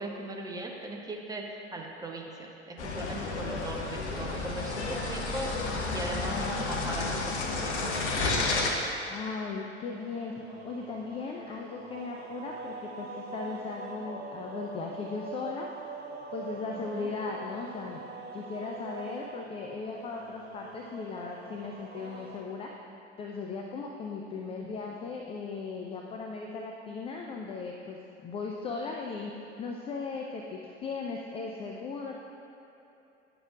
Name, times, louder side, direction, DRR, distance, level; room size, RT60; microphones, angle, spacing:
voice 1, 0.0-5.5 5.9-8.5 16.7-17.1 24.6-24.7, right 2 dB, 10° right, 0 dB, 0.7 m, -39 dB
sound 1, 2.8-8.7, left 3 dB, 70° left, 0.8 m, -31 dB
voice 2, 9.1-15.7 16.3-18.0 18.3-22.7 23.2-29.3 29.6-32.2, left 4 dB, 15° left, 0 dB, 0.3 m, -37 dB
sound 2, 9.9-22.4, right 3 dB, 60° right, 0.9 m, -43 dB
9.3 x 6.0 x 2.4 m, 2.9 s
figure-of-eight pair, 75°, 35 cm